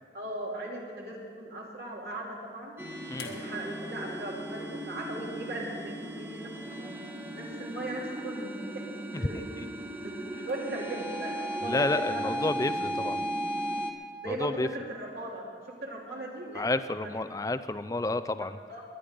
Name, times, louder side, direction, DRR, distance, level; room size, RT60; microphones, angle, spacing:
voice 1, 0.1-2.8 3.3-6.9 7.3-9.4 10.0-12.3 14.2-16.7 17.0-17.2 18.4-18.8, right 1 dB, 70° right, -2 dB, 3.1 m, -38 dB
sound 1, 2.8-13.9, right 1 dB, 15° right, 1.0 m, -36 dB
sound 2, 3.2-6.3 7.5-7.6, left 4 dB, 75° left, 1.7 m, -49 dB
voice 2, 11.6-13.2 14.3-14.7 16.5-18.6, left 2 dB, 20° left, 13 dB, 0.4 m, -30 dB
21.5 x 10.0 x 5.2 m, 2.3 s
head